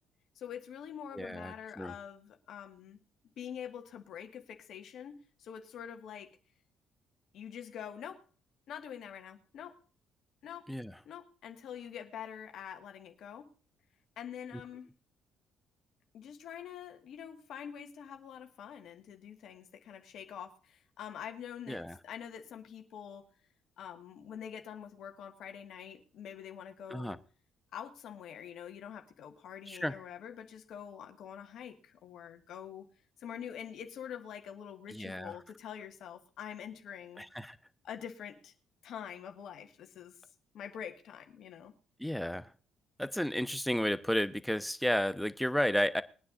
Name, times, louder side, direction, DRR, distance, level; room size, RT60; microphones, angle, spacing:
voice 1, 0.3-3.0 3.4-6.3 7.3-8.2 8.7-9.8 10.4-10.7 11.0-13.5 14.2-14.9 16.1-23.3 23.8-27.2 27.7-32.9 33.2-37.2 37.8-38.5 38.8-40.2 40.5-41.7, left 8 dB, 70° left, 5 dB, 1.7 m, -45 dB
voice 2, 1.1-1.9 10.7-10.9 14.5-14.6 21.7-22.0 26.9-27.2 29.7-30.0 34.9-35.3 37.2-37.6 42.0-42.5 43.0-46.0, equal, 5° left, 13 dB, 0.9 m, -32 dB
21.5 x 9.6 x 2.6 m, 0.39 s
hypercardioid pair, 55°, 0 cm